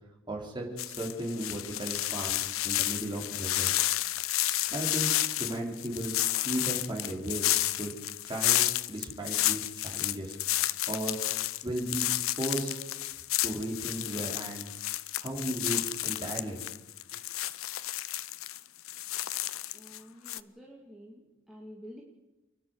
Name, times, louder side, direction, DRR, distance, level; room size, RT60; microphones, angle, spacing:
voice 1, 0.3-3.8 4.7-6.1 6.4-7.5 7.8-7.9 8.2-8.6 8.9-10.4 10.9-11.2 11.6-12.1 12.4-12.8 13.4-14.7 15.2-16.6, right 1 dB, 20° right, -1 dB, 4.0 m, -35 dB
sound 1, 0.8-20.0 20.3-20.4, left 15 dB, 80° left, 0.7 m, -31 dB
voice 2, 19.7-21.2 21.5-22.0, equal, ahead, -3 dB, 2.5 m, -49 dB
29.0 x 11.0 x 8.2 m, 1.0 s
head